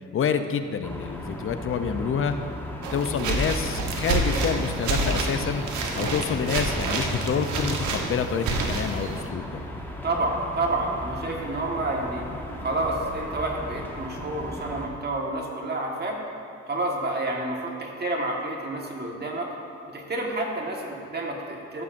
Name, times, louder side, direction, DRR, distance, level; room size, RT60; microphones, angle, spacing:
voice 1, 0.1-2.3 2.9-5.6 5.9-9.6, left 6 dB, 45° left, 9 dB, 0.6 m, -27 dB
sound 1, 0.8-14.9, equal, 5° left, 1.1 m, -36 dB
sound 2, 2.8-9.3, right 3 dB, 75° right, 1.1 m, -28 dB
voice 2, 10.0-12.2 12.6-16.2 16.7-19.5 19.9-21.8, right 2 dB, 35° right, 0 dB, 1.5 m, -29 dB
14.5 x 7.1 x 2.6 m, 2.5 s
cardioid pair, 90°, 30 cm